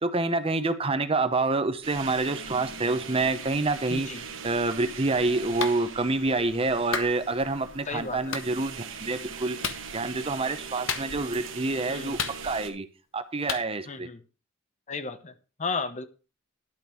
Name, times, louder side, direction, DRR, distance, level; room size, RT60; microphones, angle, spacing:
voice 1, 0.0-9.6 9.9-12.9 13.1-14.1, right 3 dB, 30° right, 10 dB, 0.8 m, -27 dB
sound 1, 1.8-12.7, right 5 dB, 70° right, 1.5 m, -41 dB
voice 2, 3.9-4.2 7.9-8.4 11.9-12.2 13.9-14.2 14.9-16.1, left 4 dB, 35° left, 11 dB, 0.9 m, -34 dB
Clapping, 5.6-5.8 6.9-7.1 8.3-8.5 9.6-9.8 10.9-11.3 12.2-12.7 13.5-13.7, left 6 dB, 70° left, 1.2 m, -31 dB
12.0 x 5.3 x 6.1 m, 0.34 s
head